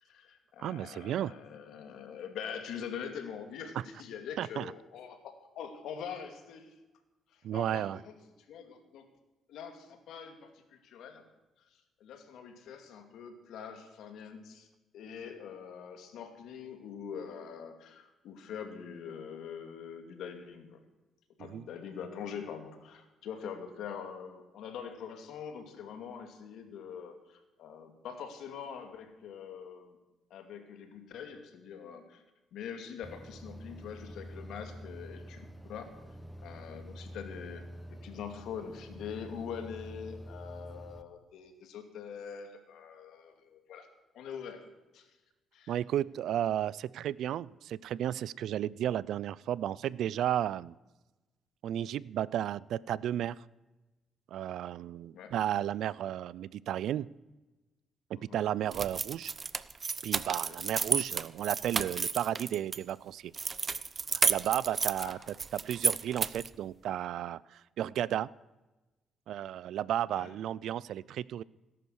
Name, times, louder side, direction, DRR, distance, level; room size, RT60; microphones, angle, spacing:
voice 1, 0.0-6.7 7.3-8.1 8.5-9.1 9.5-11.2 11.7-14.7 14.9-20.8 21.4-30.0 30.3-32.2 32.5-35.9 36.4-43.9 44.1-44.6 44.9-45.2 45.5-45.8 55.1-55.3 58.1-58.4 60.4-60.6 65.0-65.2 70.1-70.3, left 7 dB, 80° left, 6 dB, 2.3 m, -44 dB
voice 2, 0.6-1.3 4.4-4.7 7.4-8.0 21.4-21.6 45.7-50.7 51.6-53.4 54.3-57.1 58.1-59.3 60.0-63.3 64.3-65.2 65.5-68.3 69.3-71.4, right 11 dB, 75° right, 22 dB, 0.4 m, -33 dB
sound 1, 33.0-41.0, equal, ahead, 1.0 m, -47 dB
sound 2, 58.7-62.8 63.3-66.5, right 5 dB, 35° right, 0.7 m, -32 dB
18.0 x 11.0 x 6.4 m, 1.1 s
cardioid pair, 90°, 0 cm